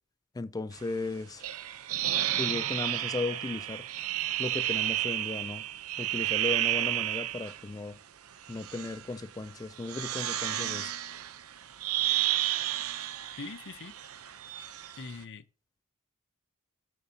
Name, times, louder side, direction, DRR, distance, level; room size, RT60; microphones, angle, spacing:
voice 1, 0.3-1.5 2.4-3.9 4.4-5.7 6.0-8.0 8.5-10.9, left 3 dB, 15° left, 0.3 m, -36 dB
sound 1, 1.4-7.6 8.4-9.0 9.8-15.1, right 13 dB, 70° right, 0.7 m, -32 dB
voice 2, 13.4-13.9 14.9-15.4, left 4 dB, 55° left, 0.7 m, -42 dB
13.5 x 6.7 x 2.8 m
head